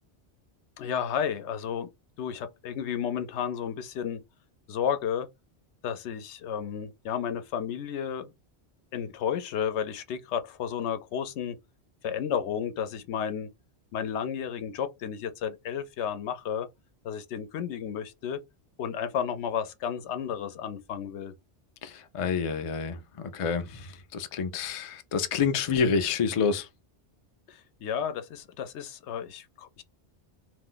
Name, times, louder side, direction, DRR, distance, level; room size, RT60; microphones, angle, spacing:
voice 1, 0.8-1.9 2.2-4.2 4.7-5.3 5.8-8.3 8.9-11.6 12.0-13.5 13.9-16.7 17.0-18.4 18.8-21.3 27.5-29.8, left 8 dB, 80° left, 0.9 m, -32 dB
voice 2, 21.8-26.7, left 6 dB, 60° left, 0.3 m, -28 dB
2.5 x 2.1 x 3.7 m
omnidirectional pair, 1.2 m